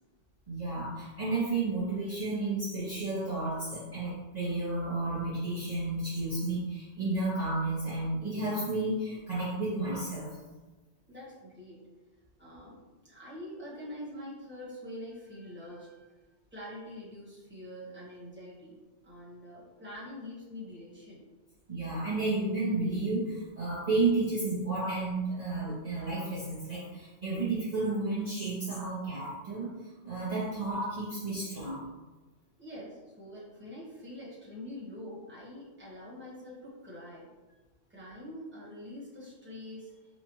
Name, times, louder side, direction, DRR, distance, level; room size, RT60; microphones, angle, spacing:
voice 1, 0.5-10.3 21.7-29.7 30.0-31.9, right 2 dB, 40° right, -10 dB, 0.9 m, -32 dB
voice 2, 11.1-11.8 12.4-16.2 16.5-18.8 19.0-21.2 27.2-27.3 32.6-37.3 37.9-40.0, left 1 dB, 10° right, -8 dB, 1.2 m, -45 dB
4.1 x 2.4 x 3.0 m, 1.2 s
omnidirectional pair, 1.2 m